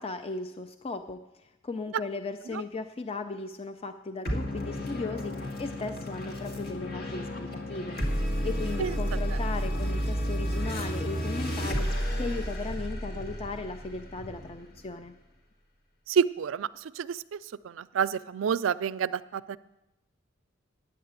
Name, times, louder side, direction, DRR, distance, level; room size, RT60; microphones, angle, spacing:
voice 1, 0.0-8.0 8.4-15.1, left 3 dB, 30° left, 8 dB, 0.4 m, -37 dB
sound 1, 4.2-15.0, equal, 55° left, 2.1 m, -32 dB
voice 2, 16.1-17.4 17.6-19.6, right 7 dB, 80° right, 16 dB, 0.4 m, -29 dB
9.5 x 8.6 x 8.1 m, 0.96 s
head